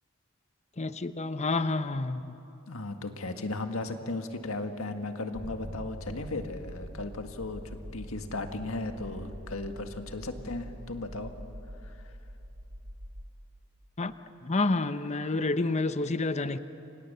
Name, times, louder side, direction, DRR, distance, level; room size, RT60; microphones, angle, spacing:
voice 1, 0.8-2.4 14.0-14.1 14.4-16.6, left 3 dB, 35° left, 11 dB, 0.8 m, -29 dB
voice 2, 2.7-11.3 11.8-11.9, left 2 dB, 80° left, 6 dB, 1.8 m, -36 dB
sound 1, 5.3-13.2, equal, 75° right, 3.0 m, -43 dB
30.0 x 25.5 x 6.8 m, 3.0 s
head